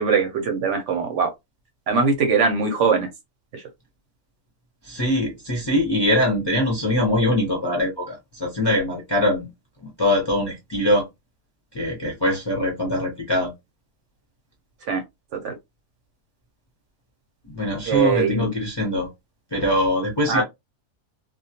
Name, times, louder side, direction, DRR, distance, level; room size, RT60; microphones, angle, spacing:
voice 1, 0.0-1.3 1.9-3.1 3.5-3.6 14.9-15.0 15.3-15.6 17.9-18.5 20.3-20.4, right 5 dB, 65° right, 0.8 m, -21 dB
voice 2, 4.8-9.5 9.8-11.0 11.7-13.5 17.4-19.1 19.5-20.4, left 1 dB, 25° left, 0.6 m, -22 dB
2.2 x 2.2 x 2.7 m
omnidirectional pair, 1.5 m